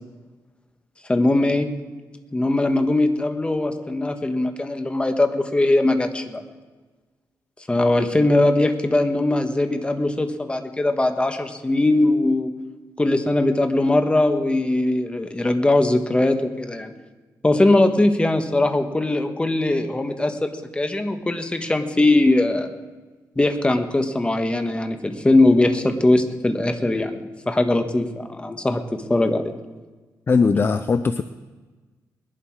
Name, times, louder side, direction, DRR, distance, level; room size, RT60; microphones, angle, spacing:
voice 1, 1.1-1.7 2.3-6.4 7.7-12.5 13.0-16.9 17.4-22.7 23.4-29.6, left 2 dB, 15° left, 6 dB, 1.3 m, -20 dB
voice 2, 30.3-31.2, left 4 dB, 35° left, 11 dB, 0.5 m, -19 dB
20.5 x 11.5 x 4.7 m, 1.3 s
cardioid pair, 100°, 7 cm